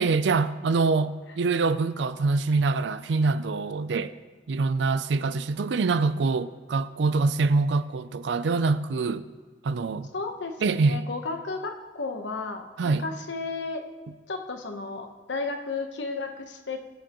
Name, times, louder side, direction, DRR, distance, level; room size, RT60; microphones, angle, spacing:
voice 1, 0.0-4.1 4.5-9.2 9.6-10.1 10.6-11.0 12.8-13.1, right 3 dB, 75° right, 0.4 m, -25 dB
voice 2, 10.1-13.9 14.3-16.8, left 3 dB, 80° left, 1.0 m, -33 dB
19.0 x 7.5 x 3.0 m
head